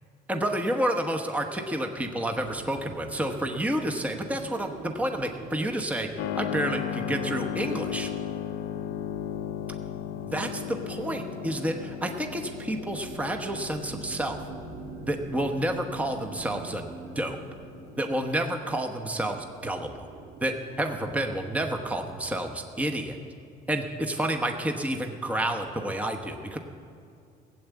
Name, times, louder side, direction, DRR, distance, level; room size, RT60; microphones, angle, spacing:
voice 1, 0.3-8.1 10.3-14.4 15.0-16.9 17.1-17.4 18.0-20.1 20.4-23.2 23.7-26.6, right 1 dB, 10° right, 3 dB, 1.0 m, -30 dB
sound 1, 2.3-22.1, right 5 dB, 75° right, 1.2 m, -46 dB
Keyboard (musical), 6.2-18.6, left 10 dB, 80° left, 0.5 m, -36 dB
16.5 x 8.0 x 8.3 m, 2.5 s
cardioid pair, 110°, 17 cm